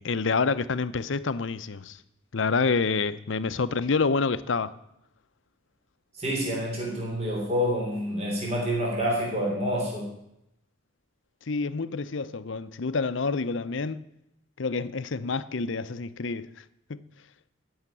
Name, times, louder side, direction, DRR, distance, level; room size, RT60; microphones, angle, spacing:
voice 1, 0.0-2.0 2.3-4.7 11.5-14.1 14.6-16.5 16.9-17.0, left 4 dB, 65° left, 0.7 m, -27 dB
voice 2, 6.2-10.1, equal, 30° right, 3.3 m, -28 dB
14.5 x 6.5 x 9.0 m
head